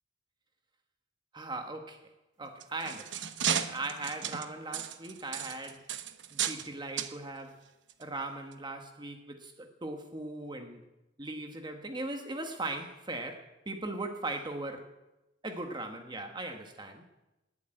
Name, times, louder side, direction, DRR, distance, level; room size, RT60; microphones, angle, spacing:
voice 1, 1.3-2.0 2.4-3.2 3.5-5.9 6.3-7.6 8.0-10.8 11.2-14.9 15.4-17.0, right 2 dB, 25° right, 1.3 m, -39 dB
sound 1, 2.4-6.7 7.0-7.1 7.9-8.0 8.5-8.6, right 8 dB, 80° right, 1.0 m, -34 dB
18.5 x 8.1 x 9.0 m
head